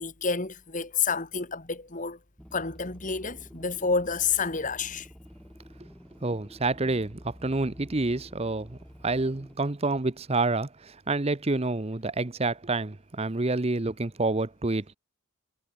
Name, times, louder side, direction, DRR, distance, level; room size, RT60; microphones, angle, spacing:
voice 1, 0.0-2.2 2.5-5.1, left 5 dB, 35° left, 1.7 m, -29 dB
sound 1, 2.4-9.6, equal, 5° left, 5.2 m, -50 dB
voice 2, 6.2-8.8 9.0-14.8, right 2 dB, 30° right, 0.8 m, -28 dB
head